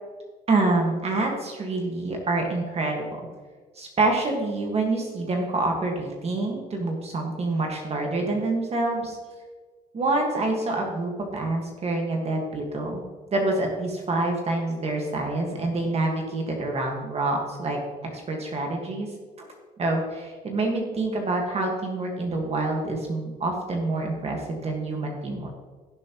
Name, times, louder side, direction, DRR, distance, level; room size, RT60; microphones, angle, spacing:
voice 1, 0.5-3.1 3.8-9.2 9.9-13.0 13.3-17.8 18.1-19.1 19.4-19.5 19.8-25.5, right 2 dB, 40° right, 1 dB, 1.7 m, -27 dB
16.5 x 7.4 x 3.0 m, 1.4 s
cardioid pair, 110°, 17 cm